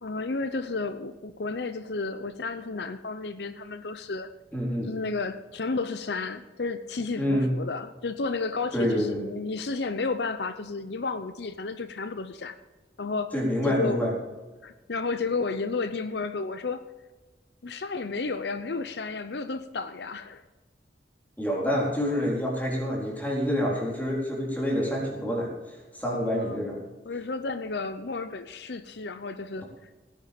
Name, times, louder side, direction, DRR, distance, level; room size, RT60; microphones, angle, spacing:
voice 1, 0.0-4.3 4.8-12.5 13.0-13.3 13.6-14.1 14.6-16.8 17.6-20.4 26.1-26.6 27.1-29.7, left 3 dB, 75° left, 11 dB, 0.7 m, -32 dB
voice 2, 4.5-4.9 7.2-7.6 8.7-9.2 13.3-14.1 21.4-25.5 25.9-26.8, equal, 10° left, -3 dB, 4.0 m, -27 dB
16.5 x 9.9 x 5.3 m, 1.2 s
head